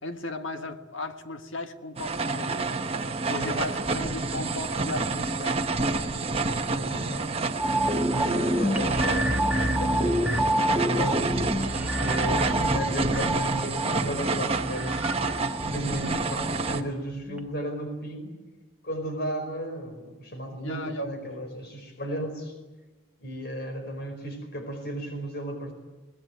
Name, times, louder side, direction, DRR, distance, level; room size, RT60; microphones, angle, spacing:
voice 1, 0.0-2.8 3.3-5.6 20.6-21.2 22.0-22.2, left 2 dB, 70° left, 8 dB, 1.6 m, -36 dB
sound 1, 2.0-16.8, right 3 dB, 30° right, 1.2 m, -29 dB
voice 2, 6.7-7.3 7.8-8.0 8.3-15.1 15.6-18.3 18.8-22.5 23.2-25.7, equal, 50° left, 6 dB, 4.9 m, -35 dB
sound 2, 7.6-16.9 17.3-17.4, equal, 5° right, 1.3 m, -28 dB
23.5 x 19.5 x 9.2 m, 1.2 s
head